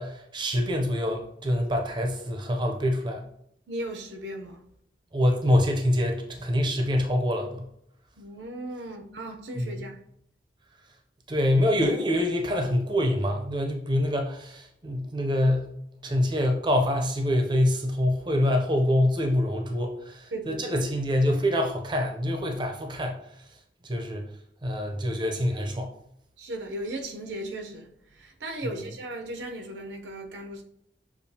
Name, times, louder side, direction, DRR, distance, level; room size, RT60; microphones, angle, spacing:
voice 1, 0.0-3.2 5.1-7.7 9.6-9.7 11.3-15.7 16.0-23.2 23.8-24.2 24.6-25.9, left 1 dB, 25° right, 0.5 m, -25 dB
voice 2, 3.7-4.6 8.2-10.0 20.3-20.6 26.4-30.6, right 1 dB, 90° right, 0.7 m, -36 dB
6.8 x 2.4 x 2.7 m
head